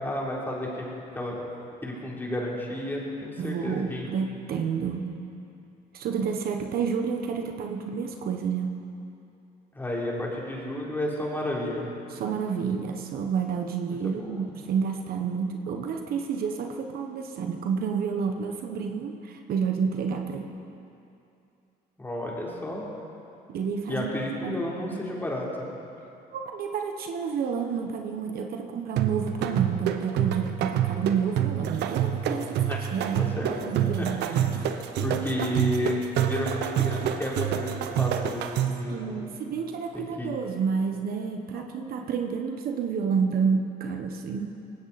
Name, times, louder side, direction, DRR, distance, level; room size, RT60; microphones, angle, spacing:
voice 1, 0.0-1.4 1.8-4.1 9.7-11.9 13.9-14.5 22.0-22.9 23.9-25.6 32.3-32.8 33.4-34.4 35.0-39.4 39.9-40.4 41.5-41.7, left 1 dB, 10° left, -4 dB, 3.6 m, -32 dB
voice 2, 3.4-5.1 5.9-8.8 12.1-20.5 23.5-24.1 24.4-25.0 26.3-32.4 32.9-34.7 38.9-44.5, right 6 dB, 65° right, 4 dB, 1.2 m, -30 dB
sound 1, 29.0-38.9, right 10 dB, 80° right, 0.9 m, -27 dB
19.5 x 16.5 x 4.2 m, 2.7 s
cardioid pair, 110°, 17 cm